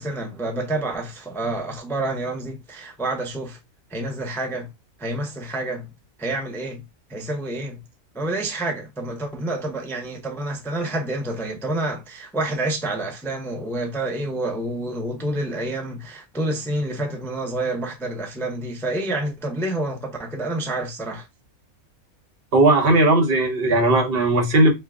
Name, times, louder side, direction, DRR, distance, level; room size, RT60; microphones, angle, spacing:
voice 1, 0.0-3.6 3.9-4.7 5.0-5.9 6.2-6.8 7.1-7.8 8.1-21.3, right 2 dB, 5° left, 0.3 m, -28 dB
voice 2, 22.5-24.7, right 2 dB, 45° right, 1.2 m, -17 dB
4.5 x 2.2 x 3.5 m
omnidirectional pair, 1.5 m